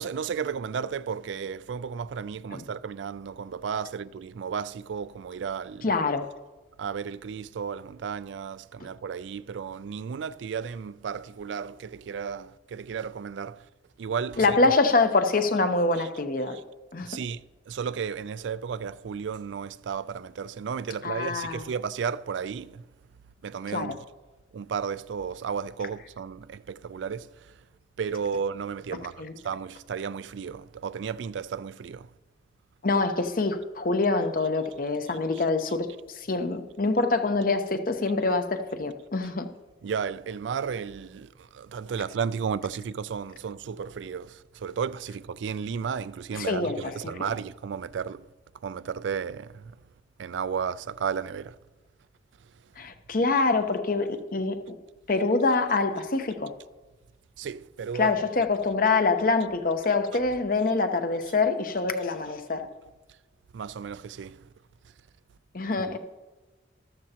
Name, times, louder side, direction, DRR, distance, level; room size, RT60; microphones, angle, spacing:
voice 1, 0.0-5.8 6.8-13.6 14.0-14.6 16.0-16.1 16.5-16.6 17.0-17.4 17.7-22.8 23.4-24.0 24.5-27.3 28.0-32.1 35.1-35.4 39.8-48.2 48.6-49.6 50.2-51.5 57.4-58.1 63.5-64.4, right 6 dB, 80° right, 0.4 m, -33 dB
voice 2, 5.8-6.3 14.4-16.6 16.9-17.1 21.0-21.6 23.7-24.0 29.2-29.3 32.8-39.5 46.3-47.1 52.8-54.8 55.1-56.5 58.0-62.7 65.5-66.0, left 3 dB, 50° left, 0.8 m, -25 dB
13.5 x 13.0 x 2.9 m
head